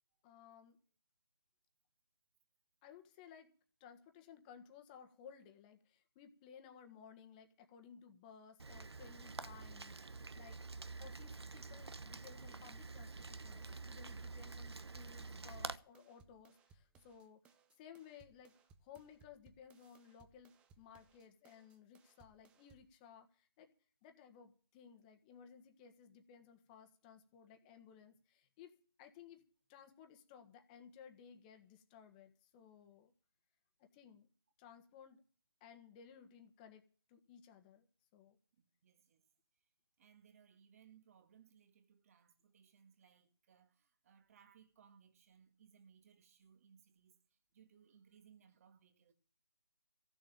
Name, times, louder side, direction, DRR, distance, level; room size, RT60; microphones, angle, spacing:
voice 1, 0.2-0.8 2.8-3.5 3.8-17.4 17.8-18.5 18.8-23.7 24.0-28.7 29.0-29.4 29.7-33.1 33.8-34.3 34.6-35.2 35.6-36.8 37.1-37.8 38.1-38.4, left 7 dB, 20° left, 1.5 m, -59 dB
Rain, 8.6-15.8, right 3 dB, 85° right, 1.0 m, -48 dB
sound 1, 15.0-23.0, right 4 dB, 10° right, 0.6 m, -68 dB
voice 2, 38.5-39.3 39.5-39.7 40.0-49.1, right 7 dB, 35° right, 1.8 m, -66 dB
14.5 x 7.1 x 9.0 m
figure-of-eight pair, 155°, 13 cm